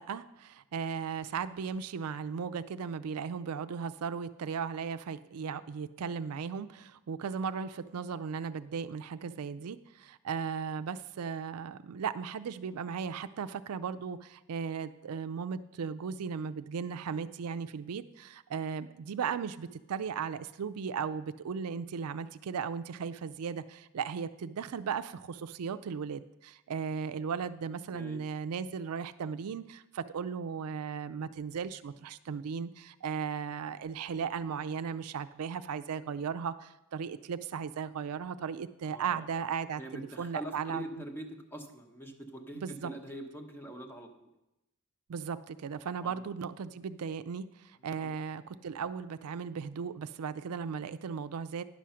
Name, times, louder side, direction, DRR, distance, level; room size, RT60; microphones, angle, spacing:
voice 1, 0.0-40.8 42.6-42.9 45.1-51.6, right 6 dB, 80° right, 12 dB, 0.4 m, -36 dB
voice 2, 38.8-39.3 39.7-44.3 46.0-46.3 47.8-48.1, right 1 dB, 10° left, 4 dB, 1.0 m, -44 dB
10.5 x 6.2 x 5.7 m, 0.91 s
head